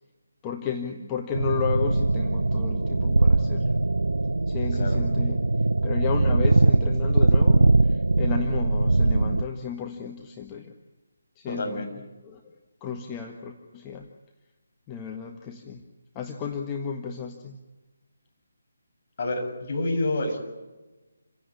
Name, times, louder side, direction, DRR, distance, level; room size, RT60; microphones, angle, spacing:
voice 1, 0.4-3.7 4.5-5.4 5.8-10.7 11.4-11.9 12.2-12.4 12.8-14.1 14.9-15.8 16.2-17.6, left 7 dB, 15° left, 2 dB, 1.7 m, -33 dB
sound 1, 1.3-9.4, right 2 dB, 75° right, 0.8 m, -21 dB
voice 2, 11.5-11.9 19.2-20.4, left 2 dB, 45° left, 3 dB, 6.9 m, -28 dB
29.0 x 16.5 x 9.9 m, 1.2 s
figure-of-eight pair, 150°, 0 cm